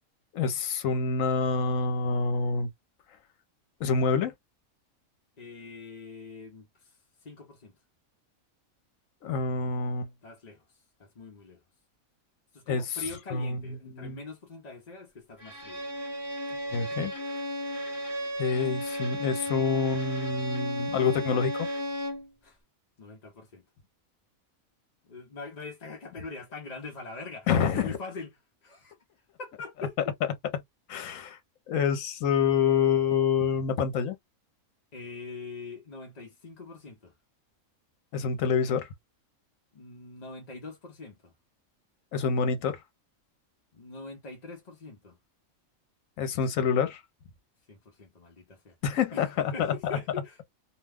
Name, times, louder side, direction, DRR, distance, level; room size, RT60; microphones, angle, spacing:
voice 1, 0.3-2.7 3.8-4.3 9.2-10.1 12.7-13.0 13.3-14.2 16.7-17.1 18.4-21.7 27.5-28.0 30.9-31.4 31.7-34.2 38.1-38.9 42.1-42.8 46.2-47.0 48.8-49.7, left 5 dB, 75° left, 1.1 m, -27 dB
voice 2, 5.4-7.7 10.2-11.6 12.5-15.8 22.4-22.6 23.0-23.6 25.0-28.3 28.6-28.9 29.4-30.0 34.9-37.1 39.7-41.3 43.7-45.2 47.7-48.8 49.1-50.4, left 3 dB, 40° left, 0.7 m, -43 dB
Bowed string instrument, 15.4-22.3, equal, 15° left, 1.1 m, -34 dB
2.6 x 2.2 x 3.4 m
omnidirectional pair, 1.4 m